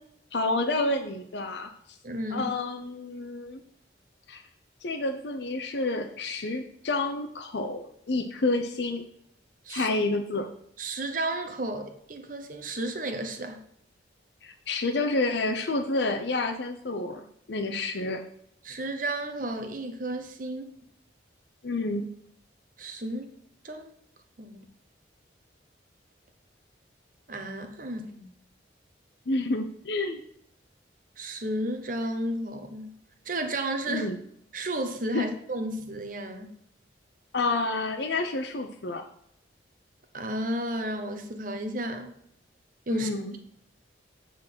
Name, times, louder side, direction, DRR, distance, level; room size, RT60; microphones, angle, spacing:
voice 1, 0.3-1.7 2.3-3.6 4.3-4.4 4.8-9.0 9.7-10.5 14.4-18.2 21.6-22.0 29.3-30.2 33.9-34.2 35.1-35.2 37.3-39.0 42.9-43.3, left 2 dB, 65° left, 5 dB, 0.6 m, -29 dB
voice 2, 2.0-2.5 9.6-9.9 10.8-13.7 18.6-20.7 22.8-23.3 23.6-23.9 24.4-24.6 27.3-28.3 31.2-33.0 33.2-34.1 34.5-36.6 40.1-42.1 42.9-43.1, right 1 dB, 45° right, 6 dB, 1.0 m, -32 dB
8.8 x 3.9 x 6.1 m, 0.70 s
head